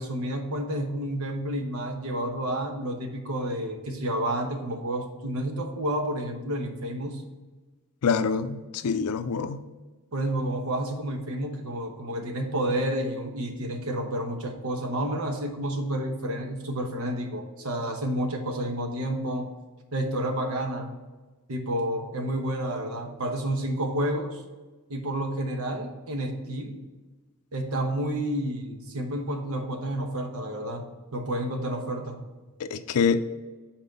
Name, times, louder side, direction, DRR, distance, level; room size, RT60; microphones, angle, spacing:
voice 1, 0.0-7.2 10.1-19.5 19.9-20.9 21.5-24.4 24.9-26.8 27.5-30.8 31.1-32.2, right 1 dB, 70° right, 4 dB, 1.0 m, -30 dB
voice 2, 8.0-9.6 32.6-33.2, left 5 dB, 90° left, 12 dB, 0.4 m, -25 dB
5.6 x 4.4 x 5.3 m, 1.3 s
head